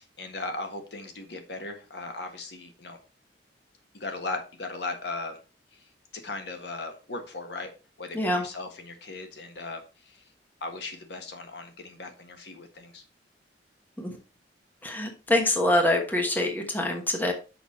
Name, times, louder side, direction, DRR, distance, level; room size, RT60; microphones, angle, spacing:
voice 1, 0.0-3.0 3.9-5.4 6.2-7.7 8.0-10.2 10.6-13.0, left 3 dB, 65° left, 5 dB, 1.5 m, -37 dB
voice 2, 8.1-8.4 14.0-14.2 14.8-17.3, left 1 dB, 10° left, 3 dB, 1.2 m, -25 dB
6.2 x 6.1 x 4.3 m, 0.33 s
head